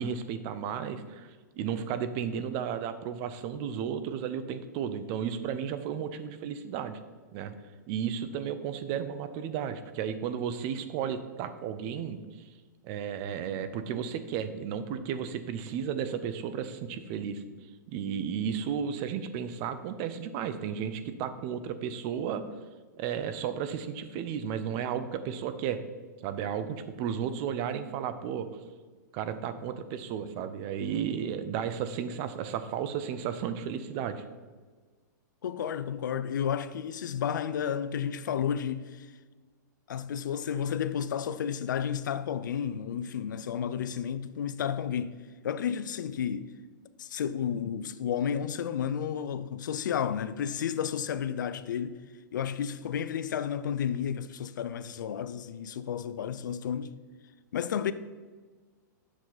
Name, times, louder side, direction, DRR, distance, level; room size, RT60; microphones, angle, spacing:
voice 1, 0.0-7.0 7.3-7.5 7.9-12.2 12.8-17.4 17.9-22.4 23.0-25.8 26.2-28.5 29.1-34.2, right 8 dB, 40° right, 0.6 m, -33 dB
voice 2, 35.4-39.1 39.9-45.1 45.4-46.5 47.0-52.0 52.3-56.9 57.5-57.9, left 8 dB, 75° left, 0.5 m, -32 dB
7.5 x 6.2 x 4.0 m
hypercardioid pair, 130°, 10 cm